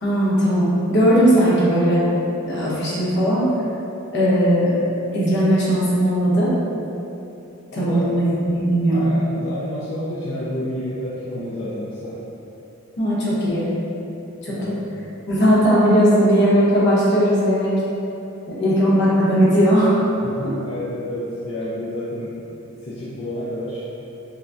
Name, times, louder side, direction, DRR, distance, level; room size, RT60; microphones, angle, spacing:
voice 1, 0.0-2.0 2.4-3.5 4.1-4.8 5.1-6.5 7.7-9.1 13.0-13.7 14.4-14.7 15.3-17.7 18.5-20.0, equal, 55° left, -8 dB, 1.1 m, -18 dB
voice 2, 7.7-8.2 8.9-12.2 14.5-14.9 20.2-22.3 22.8-23.9, left 1 dB, 75° left, -9 dB, 0.6 m, -29 dB
6.0 x 2.2 x 2.5 m, 3.0 s
head